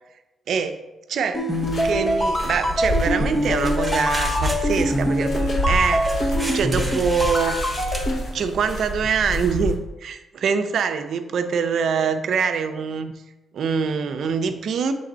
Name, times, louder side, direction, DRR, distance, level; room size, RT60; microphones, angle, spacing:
voice 1, 0.5-0.8 1.1-1.5 1.8-7.6 8.3-13.1 13.5-14.9, right 6 dB, 65° right, 8 dB, 0.5 m, -24 dB
sound 1, 1.3-8.2, equal, 20° left, 0.8 m, -24 dB
sound 2, 1.5-9.8, equal, 65° left, 2.2 m, -28 dB
sound 3, 3.6-4.8 6.0-8.0, right 1 dB, 5° right, 1.1 m, -33 dB
7.8 x 3.4 x 3.9 m, 1.0 s
cardioid pair, 95°, 0 cm